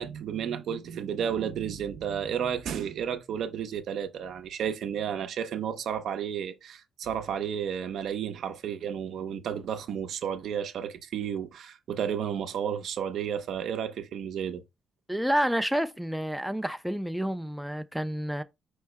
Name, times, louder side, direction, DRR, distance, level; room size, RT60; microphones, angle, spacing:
voice 1, 0.0-14.6, right 8 dB, 70° right, 0.6 m, -32 dB
voice 2, 15.1-18.4, equal, ahead, 0.4 m, -29 dB
4.5 x 2.0 x 4.5 m
cardioid pair, 90°, 0 cm